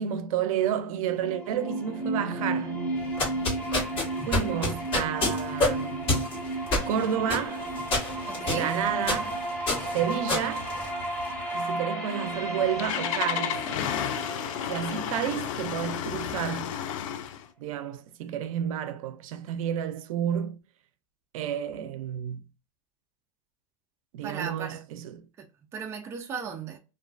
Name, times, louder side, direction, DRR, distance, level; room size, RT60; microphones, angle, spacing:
voice 1, 0.0-2.8 4.2-6.1 6.8-7.7 8.5-9.4 9.9-10.8 11.5-13.7 14.7-16.7 17.6-20.6 21.3-22.4 24.1-25.3, right 9 dB, 85° right, 0.4 m, -30 dB
sound 1, 0.9-16.9, right 1 dB, 5° left, 0.7 m, -34 dB
sound 2, 3.0-11.4, left 2 dB, 30° left, 1.3 m, -29 dB
voice 2, 8.3-8.7 24.2-24.8 25.4-26.8, right 6 dB, 15° right, 0.3 m, -36 dB
Engine starting, 12.3-17.5, left 9 dB, 75° left, 0.4 m, -32 dB
2.3 x 2.3 x 2.3 m
supercardioid pair, 165°, 17 cm